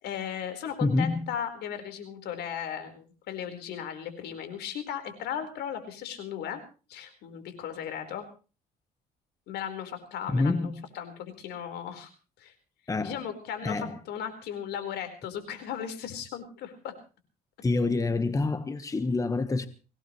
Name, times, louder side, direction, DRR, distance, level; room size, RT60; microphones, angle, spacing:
voice 1, 0.0-6.6 6.9-8.3 9.5-12.1 12.4-12.5 13.0-16.9, left 9 dB, 80° left, 4.5 m, -36 dB
voice 2, 0.8-1.3 10.3-10.8 12.9-13.2 13.6-14.0 17.6-19.7, left 3 dB, 20° left, 1.3 m, -27 dB
24.0 x 18.0 x 3.2 m
cardioid pair, 110°, 17 cm